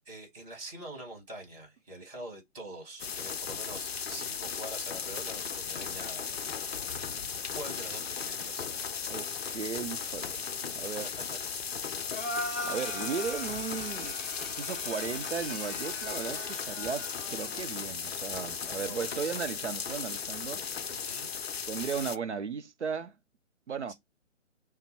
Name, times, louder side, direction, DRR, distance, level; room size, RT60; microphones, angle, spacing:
voice 1, 0.0-6.8 7.5-8.7 10.9-11.4 18.7-19.5 20.9-21.3 23.9-24.0, right 1 dB, 30° right, 2.3 m, -45 dB
sound 1, 3.0-22.2, left 6 dB, 55° left, 0.4 m, -36 dB
voice 2, 9.1-11.1 12.6-14.2 14.6-20.6 21.7-23.2 23.7-23.9, right 6 dB, 65° right, 0.7 m, -36 dB
sound 2, 12.1-17.7, left 1 dB, 5° left, 0.5 m, -39 dB
sound 3, 13.8-14.2 15.4-15.6 16.8-17.2 18.3-18.6, right 1 dB, 15° right, 1.4 m, -50 dB
5.2 x 2.2 x 4.2 m
figure-of-eight pair, 140°, 38 cm